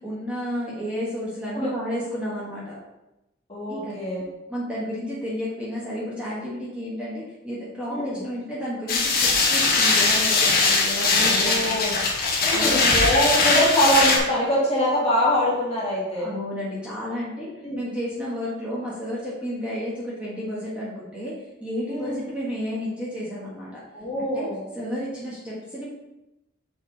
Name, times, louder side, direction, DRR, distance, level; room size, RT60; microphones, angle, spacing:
voice 1, 0.0-2.8 3.7-4.0 4.5-11.6 11.8-11.9 12.5-12.8 16.2-21.3 21.6-23.8 24.2-24.5 24.7-25.9, equal, 5° right, -8 dB, 1.5 m, -32 dB
voice 2, 3.5-4.3 7.9-8.2 11.1-12.0 12.4-16.3 17.6-17.8 21.9-22.2 23.9-24.6, equal, 30° left, -5 dB, 1.7 m, -24 dB
sound 1, 8.9-14.2, left 3 dB, 45° left, 1.1 m, -20 dB
6.1 x 4.9 x 4.0 m, 0.93 s
head